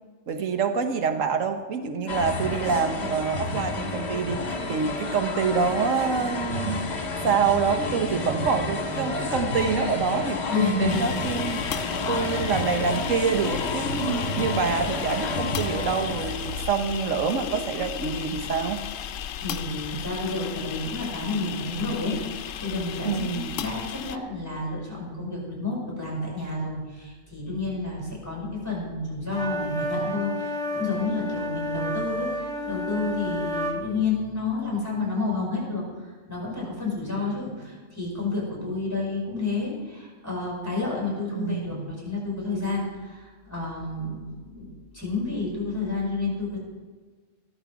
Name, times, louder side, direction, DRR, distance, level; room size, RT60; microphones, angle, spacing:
voice 1, 0.3-18.8 23.0-23.6 41.3-41.9, right 5 dB, 90° right, 6 dB, 1.4 m, -26 dB
sound 1, 2.1-16.6, left 3 dB, 55° left, 1.7 m, -30 dB
voice 2, 10.5-11.1 19.4-32.3 32.6-46.6, left 3 dB, 15° left, -4 dB, 5.5 m, -30 dB
sound 2, 10.9-24.2, left 9 dB, 80° left, 1.0 m, -35 dB
sound 3, 29.3-33.8, left 1 dB, 25° right, 2.4 m, -30 dB
14.5 x 12.5 x 4.7 m, 1.4 s
omnidirectional pair, 1.3 m